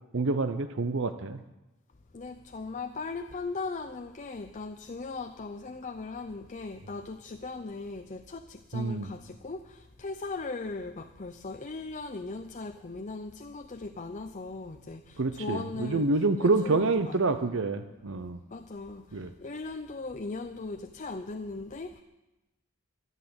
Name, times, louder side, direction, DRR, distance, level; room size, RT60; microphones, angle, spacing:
voice 1, 0.1-1.4 8.7-9.1 15.2-18.4 19.1-19.3, right 3 dB, 60° right, 10 dB, 0.7 m, -27 dB
voice 2, 2.1-17.6 18.5-22.0, left 3 dB, 35° left, 6 dB, 0.6 m, -39 dB
14.0 x 11.0 x 7.9 m, 1.0 s
head